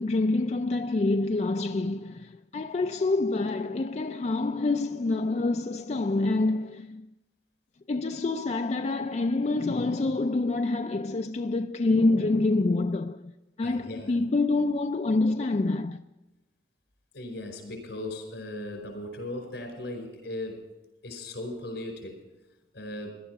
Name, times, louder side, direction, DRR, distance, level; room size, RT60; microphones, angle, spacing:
voice 1, 0.0-7.0 7.9-13.3 13.6-16.0, left 2 dB, 40° left, 0.4 m, -26 dB
voice 2, 13.6-14.2 17.1-20.6 21.0-22.2 22.7-23.1, left 1 dB, 80° left, 4.8 m, -37 dB
17.0 x 11.5 x 4.7 m
head